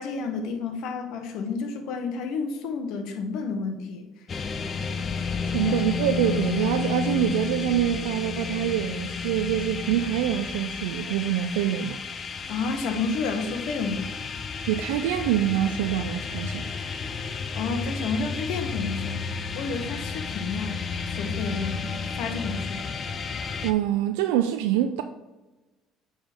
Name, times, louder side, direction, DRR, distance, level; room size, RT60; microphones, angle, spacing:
voice 1, 0.0-4.1 5.2-5.8 12.5-14.1 17.5-19.3 19.5-23.0, left 4 dB, 70° left, 1.1 m, -31 dB
sound 1, 4.3-23.7, left 5 dB, 40° left, 0.6 m, -32 dB
voice 2, 5.4-12.0 14.7-16.7 23.6-25.0, right 11 dB, 85° right, 0.3 m, -25 dB
8.7 x 3.8 x 3.6 m
supercardioid pair, 80°, 0 cm